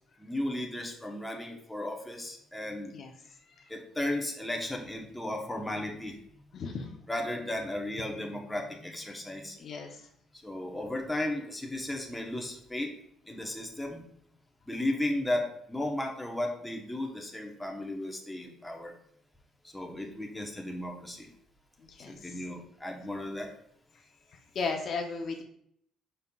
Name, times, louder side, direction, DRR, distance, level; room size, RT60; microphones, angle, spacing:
voice 1, 0.2-2.9 3.7-6.2 7.1-9.6 10.4-12.9 13.3-14.0 14.7-18.9 19.7-21.3 22.1-23.5, left 1 dB, 5° left, 0 dB, 0.9 m, -35 dB
voice 2, 6.5-7.0 9.6-10.0 21.8-22.3 24.3-25.4, left 4 dB, 50° left, 2 dB, 0.6 m, -36 dB
5.3 x 4.2 x 2.3 m, 0.70 s
cardioid pair, 100°, 0 cm